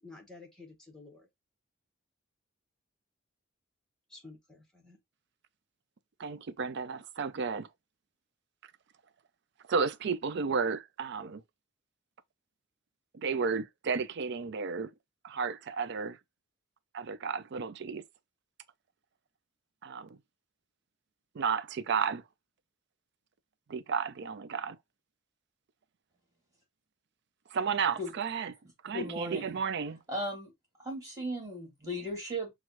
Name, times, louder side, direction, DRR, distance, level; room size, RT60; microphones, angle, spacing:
voice 1, 0.0-1.3 4.1-5.0, left 3 dB, 5° left, 1.3 m, -52 dB
voice 2, 6.2-7.7 9.7-11.4 13.1-14.9 15.2-16.2 16.9-18.0 19.8-20.2 21.3-22.2 23.7-24.8 27.5-28.5 28.8-30.0, right 5 dB, 60° right, 0.4 m, -32 dB
voice 3, 28.9-29.6 30.1-30.5 30.8-32.5, equal, 15° right, 2.3 m, -36 dB
6.1 x 2.3 x 2.9 m
head